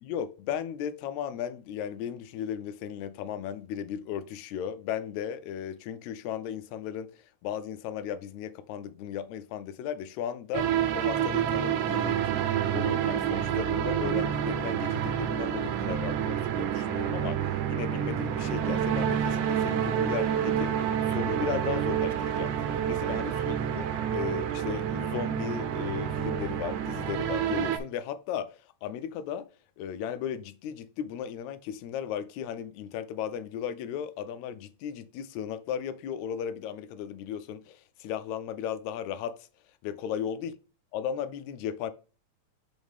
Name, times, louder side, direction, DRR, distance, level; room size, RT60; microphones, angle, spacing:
voice 1, 0.0-7.1 7.4-12.2 12.7-29.5 29.8-39.4 39.8-40.5 40.9-41.9, left 9 dB, 80° left, 1.8 m, -36 dB
sound 1, 10.5-27.8, right 9 dB, 85° right, 2.2 m, -28 dB
7.3 x 4.4 x 3.5 m
omnidirectional pair, 3.5 m